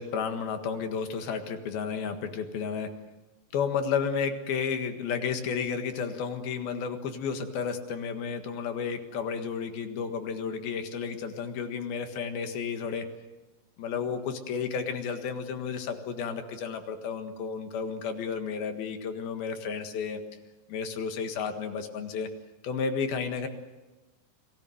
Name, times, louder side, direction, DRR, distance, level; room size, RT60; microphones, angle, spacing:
voice 1, 0.0-2.9 3.5-13.1 13.8-20.2 20.7-22.3 22.6-23.5, left 6 dB, 85° left, 6 dB, 3.6 m, -32 dB
29.5 x 20.0 x 7.8 m, 1.1 s
omnidirectional pair, 4.2 m